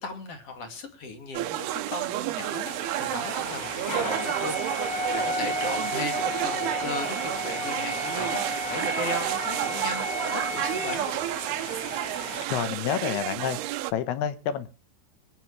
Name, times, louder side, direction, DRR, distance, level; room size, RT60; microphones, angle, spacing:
voice 1, 0.0-4.6 4.9-11.1, left 3 dB, 40° left, 6 dB, 2.6 m, -37 dB
sound 1, 1.3-13.9, right 15 dB, 80° right, 2.5 m, -31 dB
sound 2, 2.7-12.4, left 1 dB, 25° left, 2.8 m, -33 dB
voice 2, 12.5-13.6 13.9-14.7, left 9 dB, 75° left, 12 dB, 3.1 m, -28 dB
23.0 x 9.8 x 3.2 m, 0.35 s
omnidirectional pair, 4.9 m